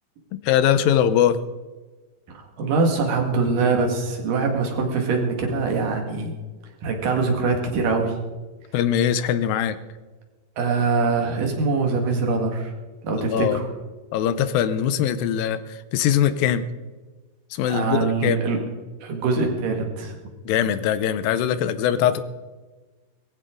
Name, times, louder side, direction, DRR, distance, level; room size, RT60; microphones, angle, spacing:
voice 1, 0.4-1.4 8.7-9.8 13.1-13.6 14.1-16.6 17.5-18.4 20.5-22.2, left 9 dB, 85° left, 13 dB, 2.5 m, -21 dB
voice 2, 2.6-6.3 6.8-8.1 10.6-12.7 13.0-13.6 17.7-18.6 19.0-20.1, right 4 dB, 70° right, 2 dB, 3.6 m, -23 dB
19.5 x 15.5 x 3.8 m, 1.3 s
omnidirectional pair, 4.0 m